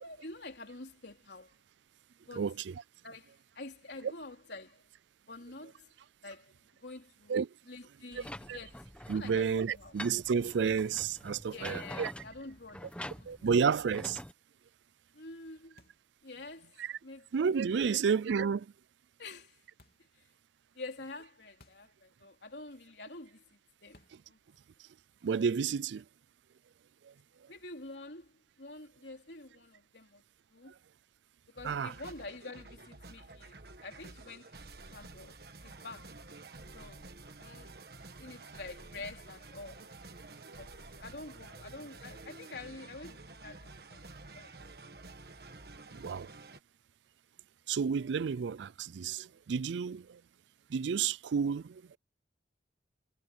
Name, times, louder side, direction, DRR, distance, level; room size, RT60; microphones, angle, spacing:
voice 1, 0.0-1.5 2.3-2.5 3.0-4.8 5.3-5.9 6.2-6.5 6.8-7.4 7.7-8.9 9.1-10.0 11.5-13.5 15.1-15.8 16.2-16.8 17.0-18.0 19.2-19.6 20.1-20.3 20.7-24.4 27.5-30.2 30.5-30.7 31.5-34.5 34.9-35.4 35.6-36.1 36.7-37.1 37.3-37.7 38.2-39.9 40.6-44.1 44.3-44.5, left 2 dB, 75° left, 3.2 m, -48 dB
voice 2, 2.3-2.8 7.3-7.5 8.1-8.2 8.5-8.6 9.1-12.1 13.3-14.2 16.8-16.9 17.3-18.7 25.2-26.0 27.0-27.1 31.6-31.9 45.9-46.3 47.7-50.2 50.7-52.0, right 6 dB, 80° right, 0.4 m, -31 dB
sound 1, 8.1-14.3, left 1 dB, 5° left, 1.3 m, -46 dB
sound 2, 15.8-16.2 17.8-18.2 19.8-20.1 21.6-22.0 22.2-22.3 23.9-24.3, left 2 dB, 55° left, 3.7 m, -62 dB
sound 3, 31.6-46.6, right 3 dB, 60° right, 1.5 m, -50 dB
head